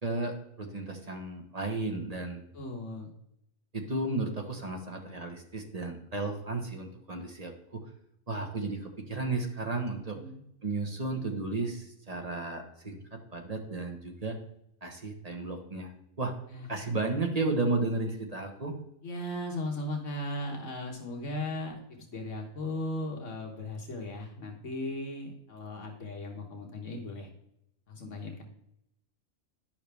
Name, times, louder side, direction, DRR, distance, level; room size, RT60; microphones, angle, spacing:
voice 1, 0.0-2.4 3.7-7.8 8.3-10.2 10.6-13.0 13.3-14.4 14.8-15.9 16.2-16.3 16.7-18.8, right 3 dB, 30° right, 2 dB, 1.1 m, -33 dB
voice 2, 2.5-3.1 10.1-10.4 16.5-16.7 19.0-27.3 27.9-28.4, left 1 dB, 65° left, 1 dB, 1.5 m, -37 dB
10.0 x 5.8 x 3.4 m, 0.78 s
omnidirectional pair, 1.4 m